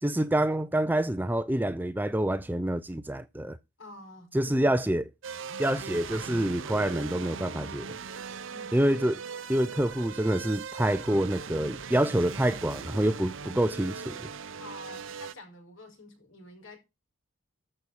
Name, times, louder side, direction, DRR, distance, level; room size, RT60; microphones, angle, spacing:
voice 1, 0.0-3.6 4.3-5.0 5.6-8.0 8.7-9.2 9.5-14.3, right 1 dB, 10° right, 0.5 m, -27 dB
voice 2, 3.8-4.8 8.5-8.8 14.6-16.8, left 2 dB, 65° left, 5.3 m, -48 dB
sound 1, 5.2-15.3, right 6 dB, 65° right, 0.7 m, -40 dB
14.0 x 6.3 x 4.2 m
head